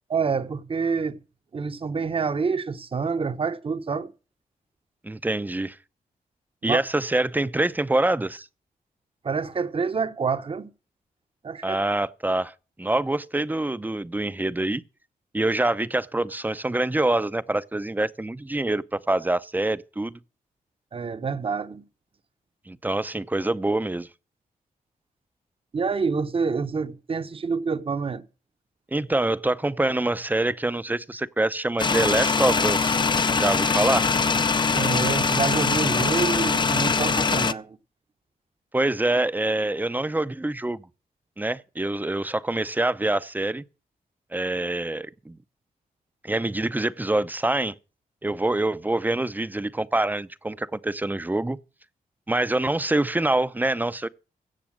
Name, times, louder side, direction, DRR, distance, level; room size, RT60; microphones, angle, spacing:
voice 1, 0.1-1.2 1.5-4.1 6.6-6.8 9.2-10.7 11.4-11.8 20.9-21.8 25.7-28.2 34.8-37.8, right 5 dB, 40° right, 0.9 m, -27 dB
voice 2, 5.0-5.8 6.6-8.5 11.6-12.5 12.8-14.8 15.3-20.2 22.7-24.1 28.9-33.0 33.3-34.1 38.7-40.9 41.4-43.6 44.3-45.4 46.2-47.8 48.2-51.6 52.3-54.1, right 2 dB, 10° right, 0.6 m, -25 dB
sound 1, 31.8-37.5, left 4 dB, 30° left, 0.5 m, -22 dB
16.0 x 6.8 x 6.2 m
cardioid pair, 90°, 15 cm